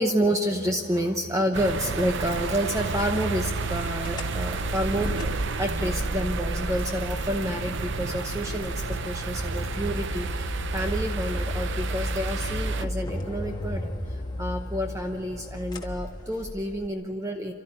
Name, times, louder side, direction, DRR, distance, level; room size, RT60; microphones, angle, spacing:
voice 1, 0.0-17.5, equal, 15° right, 4 dB, 0.8 m, -29 dB
sound 1, 1.5-12.9, right 4 dB, 55° right, 0.6 m, -31 dB
sound 2, 4.0-16.9, left 1 dB, 20° left, 1.2 m, -34 dB
29.5 x 13.0 x 9.9 m, 2.6 s
head